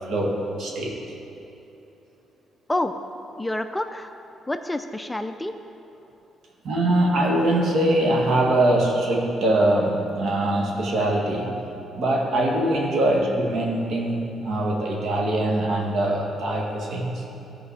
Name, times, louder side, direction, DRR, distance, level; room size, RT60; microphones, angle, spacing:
voice 1, 0.1-1.0 6.6-11.5 11.9-17.2, right 1 dB, 65° right, -1 dB, 1.7 m, -22 dB
voice 2, 3.4-4.1 4.5-5.5, left 1 dB, 10° left, 7 dB, 0.4 m, -28 dB
14.0 x 5.0 x 4.7 m, 3.0 s
cardioid pair, 90°, 0 cm